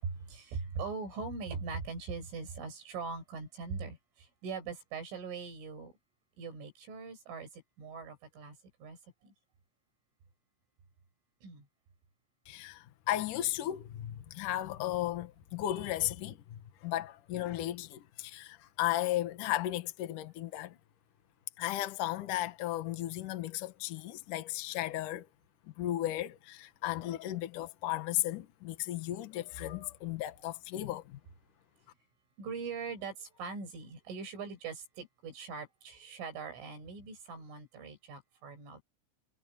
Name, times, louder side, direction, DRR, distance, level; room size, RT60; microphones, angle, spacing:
voice 1, 0.0-5.9 6.4-9.3 11.4-11.7 32.4-38.8, right 5 dB, 75° right, 9.2 m, -41 dB
voice 2, 12.5-20.8 21.6-25.3 25.8-31.2, left 14 dB, 65° left, 2.1 m, -35 dB
omnidirectional pair, 5.7 m